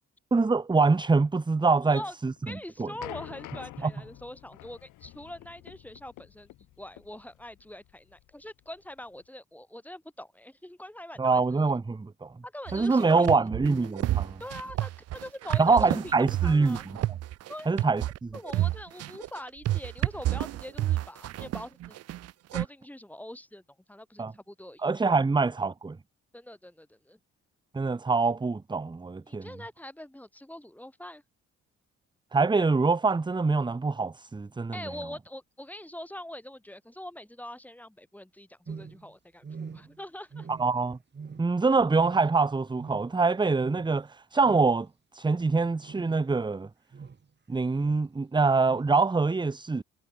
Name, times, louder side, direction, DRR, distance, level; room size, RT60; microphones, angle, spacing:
voice 1, 0.3-2.3 2.8-2.9 3.8-3.9 11.2-12.3 12.7-14.4 15.6-16.8 17.7-18.0 24.2-24.3 24.8-26.0 27.7-29.4 32.3-34.8 40.5-41.0 41.4-44.9 45.1-46.7 47.5-49.8, right 4 dB, 15° right, 0.8 m, -24 dB
voice 2, 1.7-2.1 2.5-11.6 12.4-13.5 14.4-16.8 17.5-17.9 18.3-22.0 22.5-23.6 23.9-24.9 25.1-25.2 26.3-27.2 29.3-31.2 34.7-40.5, left 1 dB, 5° left, 4.7 m, -43 dB
sound 1, 2.4-9.2, left 16 dB, 85° left, 1.3 m, -47 dB
sound 2, 12.7-22.6, right 14 dB, 55° right, 0.5 m, -30 dB
sound 3, 38.7-39.1 39.4-40.0 40.3-40.8 41.1-41.6 41.9-42.4 42.8-43.2 43.6-43.9 44.4-44.8 45.8-46.4 46.9-47.3 47.7-48.1 48.6-48.9, right 5 dB, 35° right, 4.5 m, -43 dB
cardioid pair, 90°, 30 cm